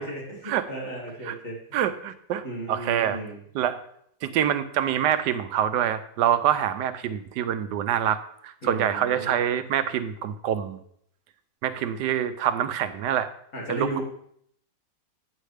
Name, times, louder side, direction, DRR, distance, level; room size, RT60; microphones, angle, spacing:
voice 1, 0.0-1.6 2.4-3.4 8.6-9.4 13.5-14.0, right 2 dB, 50° left, -3 dB, 2.7 m, -34 dB
voice 2, 1.7-3.2 3.5-3.8 4.2-8.2 8.4-10.8 11.6-13.3 13.7-14.0, right 10 dB, 90° right, 11 dB, 1.2 m, -25 dB
9.1 x 7.4 x 3.3 m, 0.69 s
omnidirectional pair, 1.8 m